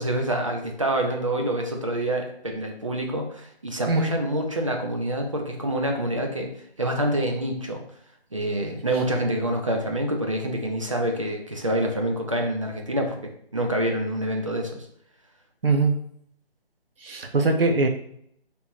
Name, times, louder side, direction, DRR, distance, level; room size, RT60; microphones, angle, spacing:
voice 1, 0.0-6.5 6.8-7.8 8.3-14.8, right 1 dB, 30° right, 2 dB, 0.6 m, -27 dB
voice 2, 15.6-15.9 17.0-17.9, right 3 dB, 65° right, 4 dB, 0.9 m, -21 dB
3.4 x 2.9 x 4.3 m, 0.70 s
figure-of-eight pair, 165°, 31 cm